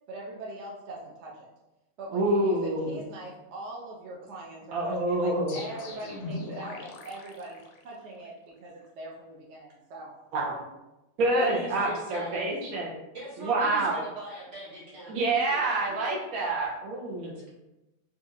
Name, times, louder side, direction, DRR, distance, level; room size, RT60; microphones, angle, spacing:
voice 1, 0.1-1.5 2.0-10.1 11.4-11.5, right 2 dB, 65° right, -3 dB, 0.7 m, -42 dB
voice 2, 2.1-3.0 4.7-5.6 10.3-10.6 11.2-13.0 13.4-14.0 15.1-17.4, right 2 dB, 80° right, -3 dB, 1.1 m, -27 dB
sound 1, 5.5-8.3, left 2 dB, 65° left, 0.7 m, -40 dB
voice 3, 11.4-12.5 13.1-15.2 15.9-16.0 17.2-17.5, right 1 dB, 45° right, -7 dB, 1.6 m, -41 dB
4.1 x 2.4 x 2.6 m, 0.96 s
omnidirectional pair, 1.5 m